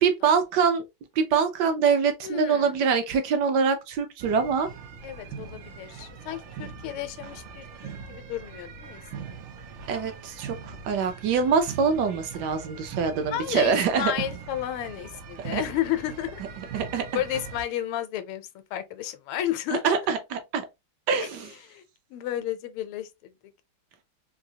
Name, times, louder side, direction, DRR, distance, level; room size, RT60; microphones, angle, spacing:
voice 1, 0.0-0.8 1.2-4.7 9.9-14.1 15.5-15.6 16.7-17.2 19.8-20.7 21.1-21.5, right 6 dB, 70° right, 1.0 m, -24 dB
voice 2, 2.2-2.7 5.0-7.7 8.1-9.0 9.3-9.4 13.3-16.4 17.1-18.4 18.7-19.9 21.2-21.3 21.7-21.8 22.1-23.1, left 12 dB, 85° left, 1.4 m, -32 dB
sound 1, 4.2-17.6, right 6 dB, 90° right, 1.6 m, -41 dB
3.9 x 2.7 x 2.7 m
omnidirectional pair, 2.3 m